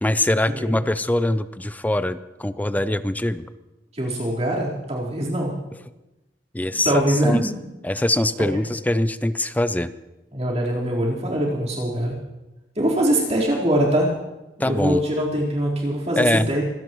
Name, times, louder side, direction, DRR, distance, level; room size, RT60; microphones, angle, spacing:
voice 1, 0.0-3.5 6.5-7.5 7.8-9.9 14.6-15.0 16.2-16.5, left 1 dB, 10° left, 12 dB, 0.5 m, -23 dB
voice 2, 3.9-5.5 6.8-7.7 8.5-8.6 10.3-12.1 12.8-14.1 14.6-16.6, right 1 dB, 35° right, -5 dB, 4.1 m, -23 dB
25.5 x 16.5 x 3.1 m, 1.0 s
head